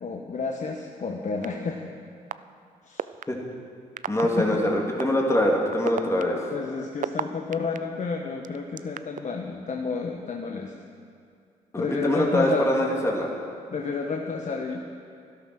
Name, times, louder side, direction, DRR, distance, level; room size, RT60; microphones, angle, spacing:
voice 1, 0.0-1.9 2.8-3.0 4.2-4.6 6.5-10.7 11.8-12.7 13.7-15.0, left 4 dB, 45° left, 2 dB, 1.2 m, -31 dB
sound 1, 1.4-1.5 2.3-2.4 3.0-3.2 4.0-4.2 5.0-5.1 5.7-7.8 8.4-9.2, right 9 dB, 50° right, 0.5 m, -30 dB
voice 2, 4.1-6.4 11.7-13.3, left 1 dB, 15° left, -1 dB, 2.4 m, -23 dB
12.5 x 11.5 x 6.2 m, 2.3 s
supercardioid pair, 55°, 17 cm